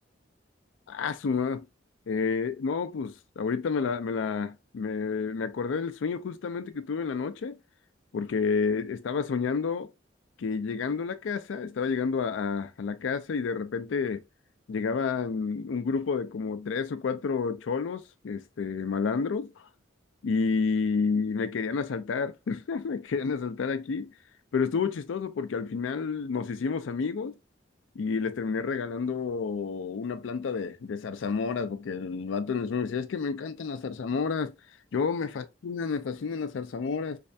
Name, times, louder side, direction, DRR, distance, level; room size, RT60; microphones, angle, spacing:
voice 1, 0.9-1.6 2.1-7.6 8.1-9.9 10.4-14.2 14.7-19.5 20.2-24.1 24.5-27.3 28.0-34.5 34.9-37.2, left 5 dB, 85° left, 0.4 m, -30 dB
3.3 x 3.3 x 2.6 m
head